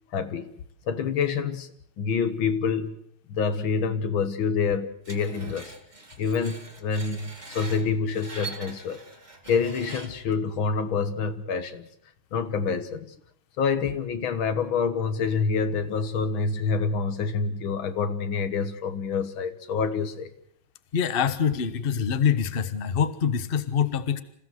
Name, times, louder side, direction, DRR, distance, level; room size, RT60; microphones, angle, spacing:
voice 1, 0.1-0.5 0.9-1.7 2.0-3.0 3.3-5.7 6.2-9.0 9.5-11.9 12.3-13.1 13.6-20.3, left 5 dB, 80° left, 2.2 m, -27 dB
Screech, 5.1-10.3, right 2 dB, 20° right, 2.2 m, -42 dB
voice 2, 20.9-24.2, left 7 dB, 35° left, 1.2 m, -25 dB
27.0 x 16.0 x 7.9 m
omnidirectional pair, 2.2 m